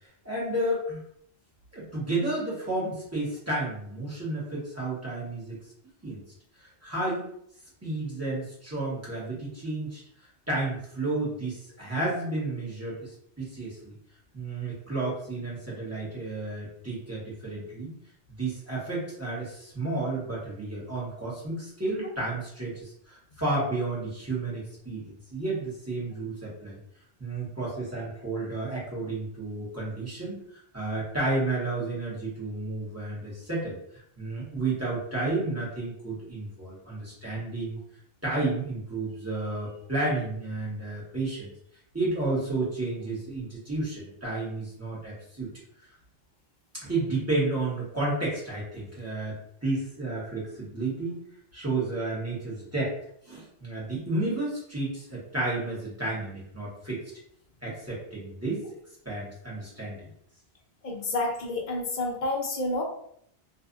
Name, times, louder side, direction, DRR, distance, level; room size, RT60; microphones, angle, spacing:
voice 1, 0.2-1.0 1.7-5.6 6.0-6.2 6.6-7.3 7.8-10.0 10.5-14.0 14.3-17.9 18.4-26.8 27.2-30.4 30.7-33.8 34.2-37.8 38.2-41.5 41.9-45.5 46.8-51.2 51.5-52.9 53.2-57.0 57.6-58.6 59.0-60.0, right 2 dB, 15° right, -7 dB, 1.0 m, -31 dB
voice 2, 60.8-62.8, left 2 dB, 55° left, 0 dB, 0.7 m, -29 dB
2.5 x 2.4 x 2.5 m, 0.69 s
omnidirectional pair, 1.1 m